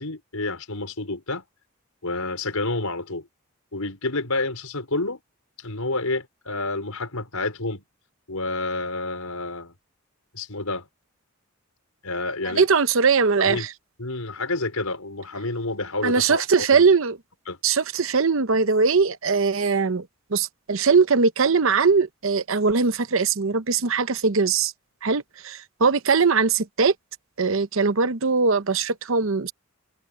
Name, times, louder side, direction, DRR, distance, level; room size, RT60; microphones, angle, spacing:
voice 1, 0.0-1.4 2.0-3.3 3.7-5.2 5.6-7.8 8.3-9.7 10.3-10.9 12.0-12.7 13.4-13.7 14.0-16.8 17.5-17.6, left 2 dB, 85° left, 5.2 m, -29 dB
voice 2, 12.5-13.7 16.0-17.2 17.6-24.7 25.0-26.9 27.4-29.5, right 5 dB, 65° right, 0.8 m, -21 dB
head